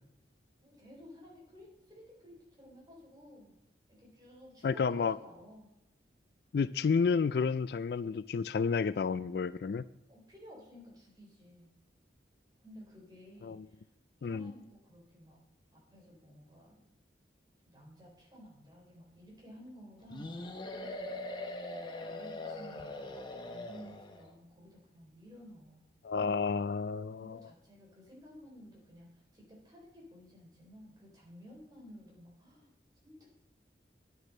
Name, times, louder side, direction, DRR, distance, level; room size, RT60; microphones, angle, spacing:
voice 1, 0.6-3.5 3.9-5.7 10.1-11.7 12.6-13.9 14.2-15.4 15.7-16.8 17.6-20.5 20.7-21.2 22.0-25.9 27.2-32.7 33.0-33.3, equal, 20° right, -3 dB, 4.1 m, -54 dB
voice 2, 4.6-5.2 6.5-9.8 13.4-13.7 14.2-14.5 26.0-27.4, left 5 dB, 60° left, 16 dB, 0.3 m, -31 dB
sound 1, 20.1-24.3, left 2 dB, 25° left, 1.0 m, -41 dB
10.0 x 9.1 x 5.4 m, 0.85 s
head